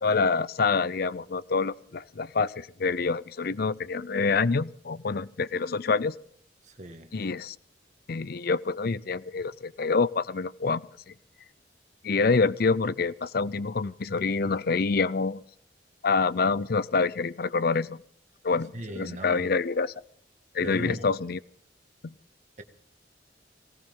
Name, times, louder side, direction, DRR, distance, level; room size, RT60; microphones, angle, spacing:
voice 1, 0.0-6.2 7.1-7.6 8.1-11.1 12.0-15.4 16.0-18.0 18.4-19.9 20.5-21.4, left 4 dB, 55° left, 18 dB, 0.6 m, -26 dB
voice 2, 6.6-7.1 18.7-19.5 20.6-21.1 22.6-22.7, right 1 dB, 40° right, 6 dB, 1.8 m, -38 dB
19.0 x 18.5 x 3.8 m, 0.63 s
head